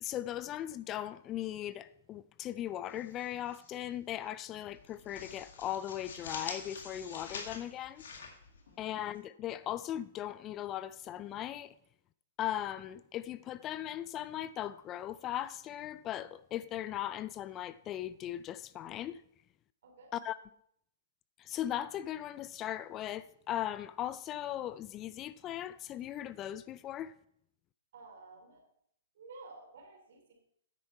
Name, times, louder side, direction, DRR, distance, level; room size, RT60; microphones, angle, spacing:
voice 1, 0.0-8.0 8.8-11.7 12.4-19.2 20.1-20.4 21.4-27.1, left 12 dB, 25° left, 0.3 m, -38 dB
sound 1, 2.9-3.8 4.1-4.3 4.7-9.2, left 5 dB, 75° left, 2.1 m, -46 dB
voice 2, 19.8-20.1 27.9-28.6 29.1-30.3, right 3 dB, 70° right, 3.7 m, -52 dB
9.4 x 7.8 x 4.3 m
hypercardioid pair, 135°, 0 cm